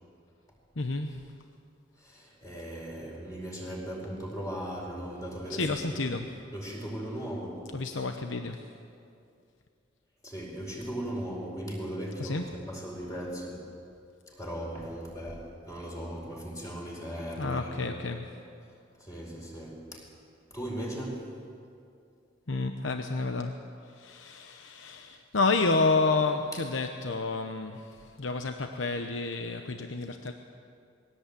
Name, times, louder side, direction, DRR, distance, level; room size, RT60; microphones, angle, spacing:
voice 1, 0.8-1.2 5.5-6.2 7.7-8.6 12.2-12.4 17.4-18.2 22.5-23.5 24.0-27.8 28.2-30.3, left 3 dB, 75° left, 6 dB, 0.9 m, -29 dB
voice 2, 2.0-6.2 6.5-7.7 10.2-13.7 14.3-18.2 19.0-20.1 20.5-21.4 26.5-26.7, right 1 dB, 15° left, -2 dB, 4.9 m, -38 dB
21.5 x 17.0 x 8.4 m, 2.4 s
head